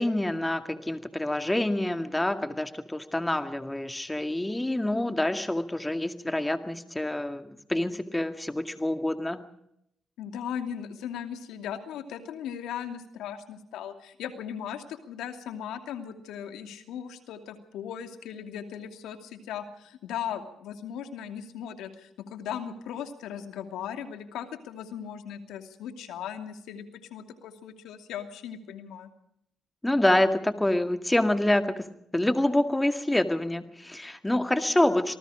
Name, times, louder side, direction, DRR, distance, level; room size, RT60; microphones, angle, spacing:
voice 1, 0.0-9.4 29.8-31.8 32.1-35.2, left 1 dB, 10° left, 8 dB, 2.1 m, -27 dB
voice 2, 10.2-29.1, left 9 dB, 85° left, 7 dB, 2.7 m, -38 dB
27.0 x 19.5 x 5.1 m, 0.75 s
cardioid pair, 90°, 0 cm